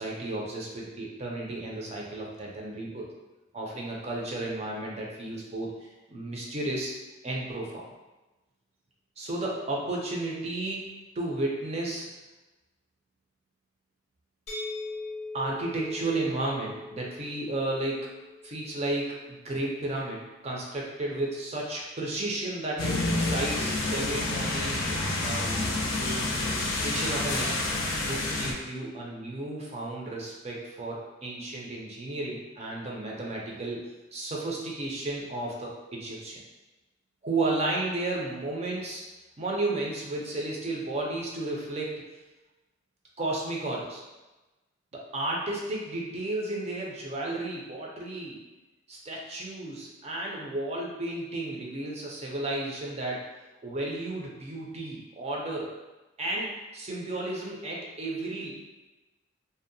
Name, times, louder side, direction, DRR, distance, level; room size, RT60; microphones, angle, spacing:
voice 1, 0.0-3.1 3.5-6.9 7.2-7.8 9.2-10.8 11.2-12.1 15.3-18.2 18.4-25.8 26.7-27.7 28.0-33.8 34.1-36.4 37.2-39.0 39.4-42.0 43.2-44.0 44.9-48.4 48.9-53.2 53.6-55.7 56.2-58.5, right 2 dB, 35° right, -2 dB, 0.5 m, -33 dB
sound 1, 14.5-20.2, left 2 dB, 35° left, 0.6 m, -42 dB
sound 2, 22.8-28.5, left 2 dB, 90° left, 0.5 m, -28 dB
2.6 x 2.1 x 2.6 m, 1.1 s
head